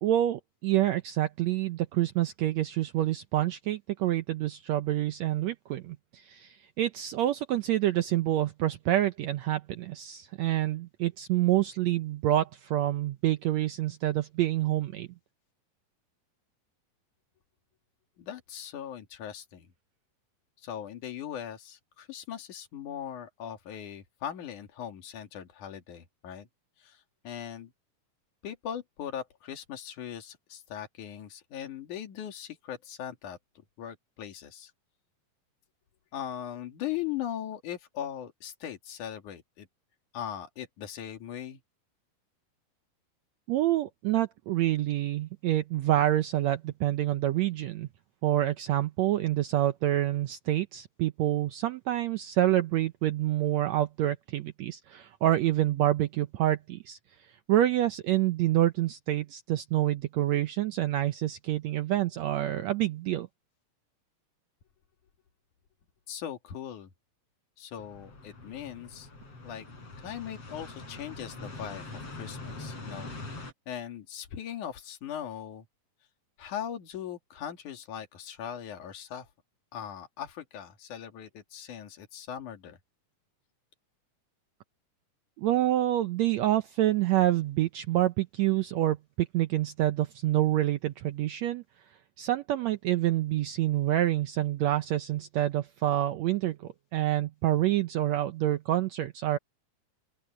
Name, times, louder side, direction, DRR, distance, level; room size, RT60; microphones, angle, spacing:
voice 1, 0.0-15.1 43.5-47.9 48.2-57.0 57.5-63.3 85.4-91.6 92.2-99.4, right 13 dB, 75° right, 1.6 m, -27 dB
voice 2, 18.2-19.7 20.6-26.5 26.8-27.7 28.4-33.4 33.8-34.7 36.1-39.7 40.1-41.6 66.1-66.9 67.6-69.1 69.4-69.7 70.0-73.1 73.7-75.7 76.4-79.3 79.7-82.8, left 9 dB, 65° left, 3.6 m, -39 dB
sound 1, 67.8-73.5, left 2 dB, 45° left, 9.0 m, -43 dB
open air
omnidirectional pair, 3.8 m